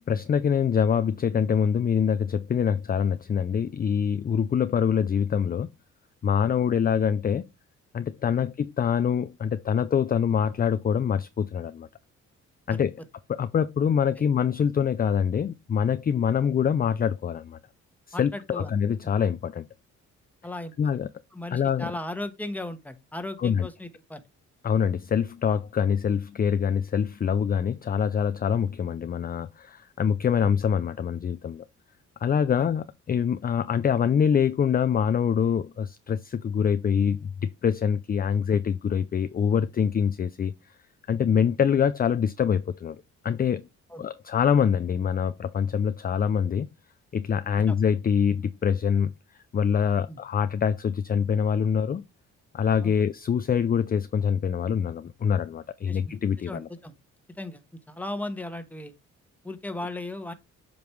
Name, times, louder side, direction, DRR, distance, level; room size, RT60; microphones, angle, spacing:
voice 1, 0.0-5.7 6.2-7.5 7.9-11.9 12.7-12.9 13.3-17.6 18.1-19.7 20.8-21.1 21.5-21.9 23.4-23.7 24.6-31.6 32.2-40.5 41.1-43.0 43.2-43.6 44.0-46.7 47.1-49.1 49.5-52.0 52.5-56.7, left 7 dB, 30° left, 0.4 m, -25 dB
voice 2, 18.1-18.7 20.4-20.9 21.3-24.2 32.6-32.7 43.9-44.0 47.7-47.8 50.1-50.2 52.8-53.0 55.9-56.9 57.4-57.6 57.9-58.9 59.4-60.3, left 1 dB, 5° left, 1.2 m, -36 dB
7.7 x 5.2 x 3.2 m
cardioid pair, 80°, 30 cm